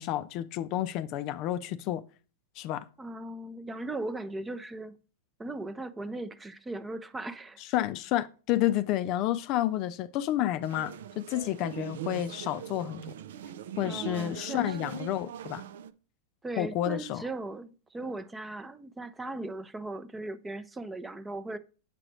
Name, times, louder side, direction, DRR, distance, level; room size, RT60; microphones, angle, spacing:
voice 1, 0.0-2.0 2.6-2.9 7.7-13.0 13.8-15.6 16.6-17.2, left 13 dB, 45° left, 0.4 m, -30 dB
voice 2, 3.0-5.0 5.4-7.6 13.8-14.9 16.4-21.6, right 2 dB, 10° right, 0.5 m, -38 dB
sound 1, 10.6-15.9, right 9 dB, 75° right, 0.4 m, -41 dB
7.6 x 4.9 x 3.1 m
hypercardioid pair, 115°, 0 cm